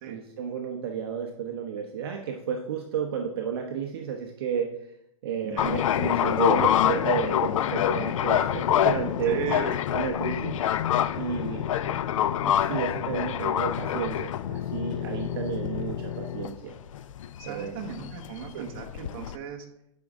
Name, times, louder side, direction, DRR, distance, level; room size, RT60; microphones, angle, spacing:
voice 1, 0.0-4.7 5.2-9.4 9.9-10.6 11.1-11.7 12.4-16.8 17.4-17.8 18.5-18.7, right 7 dB, 45° right, 2 dB, 0.8 m, -32 dB
sound 1, 5.6-19.4, left 11 dB, 70° left, 0.4 m, -26 dB
voice 2, 9.3-9.8 15.9-16.0 17.4-19.7, right 7 dB, 25° right, 1 dB, 1.1 m, -36 dB
9.4 x 5.3 x 3.6 m, 0.81 s
hypercardioid pair, 175°, 18 cm